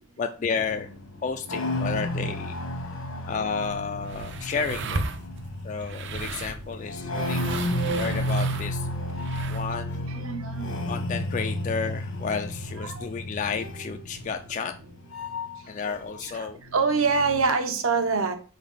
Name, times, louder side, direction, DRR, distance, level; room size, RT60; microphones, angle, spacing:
voice 1, 0.2-0.9 1.2-2.5 3.3-5.0 5.6-7.4 7.9-8.9 9.5-10.1 10.9-14.7 15.7-16.6, left 5 dB, 35° left, 6 dB, 0.3 m, -31 dB
sound 1, 0.6-16.3 16.6-17.5, left 1 dB, 80° left, 1.4 m, -32 dB
sound 2, 3.5-9.8, right 3 dB, 55° right, 0.6 m, -36 dB
voice 2, 10.1-10.6 12.8-13.1 16.4-18.3, right 4 dB, 75° right, 6 dB, 1.0 m, -25 dB
4.9 x 4.0 x 5.4 m, 0.39 s
head